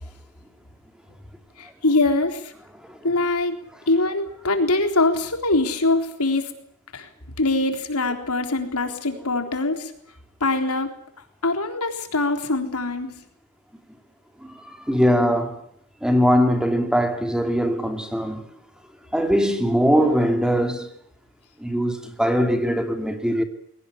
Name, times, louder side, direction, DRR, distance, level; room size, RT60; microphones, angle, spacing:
voice 1, 1.6-2.5 3.0-3.6 3.9-6.5 6.9-7.1 7.4-9.9 10.4-10.9 11.4-13.2, left 2 dB, 85° left, 3.8 m, -23 dB
voice 2, 14.4-15.6 16.0-18.4 19.1-20.9 21.6-23.4, equal, 5° right, 2.7 m, -21 dB
21.5 x 18.5 x 9.8 m
head